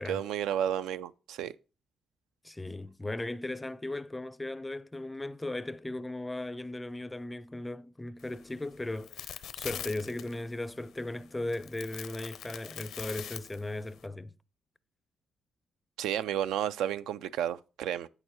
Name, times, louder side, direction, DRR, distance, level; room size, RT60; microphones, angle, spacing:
voice 1, 0.0-1.5 16.0-18.1, right 10 dB, 85° right, 0.3 m, -32 dB
voice 2, 2.4-14.3, left 2 dB, 15° left, 0.4 m, -37 dB
sound 1, 8.2-14.1, left 9 dB, 75° left, 0.5 m, -44 dB
8.5 x 6.5 x 3.1 m
cardioid pair, 90°, 0 cm